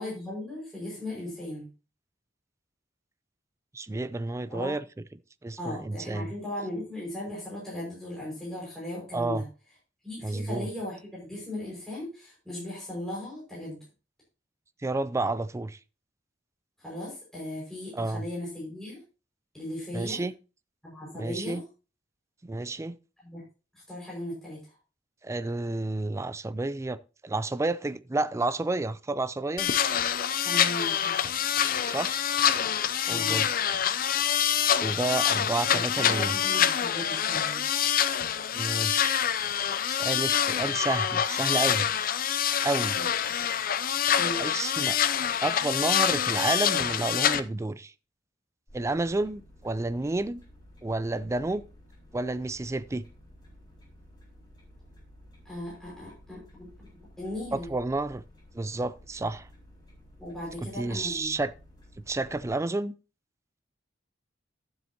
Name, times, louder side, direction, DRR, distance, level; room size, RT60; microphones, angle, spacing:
voice 1, 0.0-1.7 4.5-4.8 5.6-9.5 10.0-13.8 16.8-19.0 19.5-20.2 20.8-21.6 23.2-23.4 23.7-24.8 30.4-31.2 33.1-33.4 35.7-37.6 42.9-43.0 44.2-44.4 55.5-56.7 57.2-57.7 60.2-61.3, left 1 dB, 5° left, 5.3 m, -37 dB
voice 2, 3.7-4.8 5.4-6.3 9.1-9.4 10.2-10.7 14.8-15.8 17.9-18.2 19.9-20.3 21.1-21.6 22.4-23.0 25.2-29.7 31.9-32.2 33.1-33.6 34.8-36.4 38.5-39.2 39.9-41.9 42.6-43.0 44.4-45.0 45.4-47.9 48.7-50.4 50.8-51.6 52.1-53.0 57.5-58.2 58.5-59.5 60.8-61.5 62.1-62.9, right 2 dB, 15° right, 0.4 m, -30 dB
sound 1, 29.6-47.4, left 9 dB, 50° left, 0.5 m, -26 dB
sound 2, 48.7-62.5, equal, 25° left, 4.3 m, -53 dB
12.0 x 7.7 x 2.8 m
head